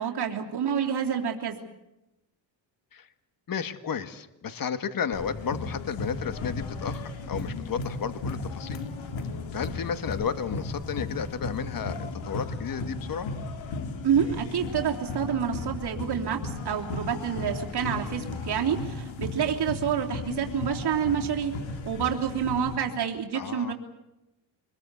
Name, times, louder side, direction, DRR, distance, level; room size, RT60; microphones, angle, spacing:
voice 1, 0.0-1.6 14.0-21.5 21.8-23.7, right 8 dB, 55° right, 1 dB, 3.3 m, -28 dB
voice 2, 3.5-8.8 9.5-13.3 23.3-23.7, left 7 dB, 45° left, 11 dB, 1.8 m, -33 dB
sound 1, 5.1-22.8, left 3 dB, 80° left, 3.5 m, -35 dB
25.5 x 21.5 x 8.2 m, 0.96 s
cardioid pair, 110°, 46 cm